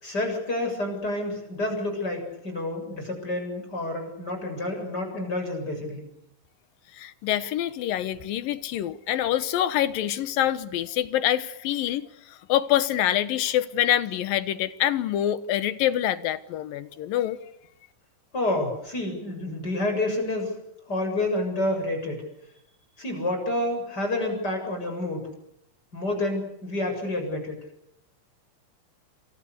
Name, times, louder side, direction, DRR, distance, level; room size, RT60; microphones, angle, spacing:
voice 1, 0.0-6.0 18.3-20.5 20.9-22.2 23.0-25.3 25.9-27.6, left 1 dB, 25° left, 7.9 m, -29 dB
voice 2, 7.0-17.4, left 12 dB, 90° left, 3.0 m, -26 dB
28.0 x 27.5 x 6.9 m
omnidirectional pair, 3.9 m